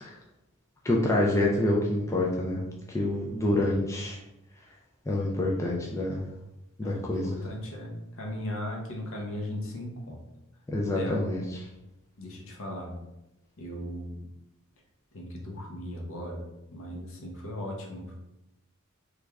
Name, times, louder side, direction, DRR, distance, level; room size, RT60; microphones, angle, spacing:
voice 1, 0.8-4.2 5.1-6.2 6.8-7.4 10.7-11.4, left 1 dB, 15° left, -3 dB, 0.4 m, -27 dB
voice 2, 6.8-10.2 10.9-11.3 12.2-13.0 13.6-14.2 15.1-18.2, left 1 dB, 65° left, 0 dB, 0.8 m, -37 dB
3.1 x 2.4 x 3.4 m, 0.92 s
head